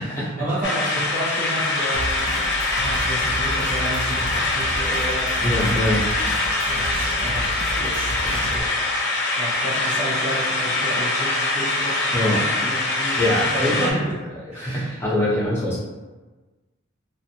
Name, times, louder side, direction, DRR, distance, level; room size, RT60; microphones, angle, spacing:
voice 1, 0.0-2.4 2.8-5.5 6.7-8.7 9.4-12.2 12.6-14.0 14.5-15.0, equal, 35° right, -9 dB, 1.1 m, -31 dB
sound 1, 0.6-13.9, left 2 dB, 55° left, 0.4 m, -23 dB
sound 2, 1.9-8.6, right 1 dB, 75° right, 0.4 m, -32 dB
voice 2, 5.4-6.1 12.1-12.5 13.2-14.0 14.5-15.8, left 1 dB, 10° left, -9 dB, 0.7 m, -23 dB
2.4 x 2.1 x 2.7 m, 1.2 s
head